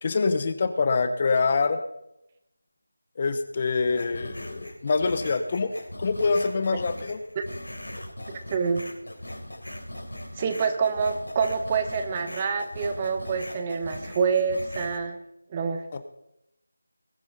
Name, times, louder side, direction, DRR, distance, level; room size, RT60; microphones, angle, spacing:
voice 1, 0.0-1.8 3.2-5.7 6.0-7.2, left 4 dB, 30° left, 10 dB, 1.1 m, -25 dB
sound 1, 3.9-15.0, left 1 dB, 90° left, 3.9 m, -40 dB
voice 2, 8.5-8.8 10.4-15.2 15.5-15.9, right 5 dB, 20° right, 7 dB, 1.2 m, -26 dB
21.0 x 9.7 x 4.0 m, 0.83 s
figure-of-eight pair, 165°, 0 cm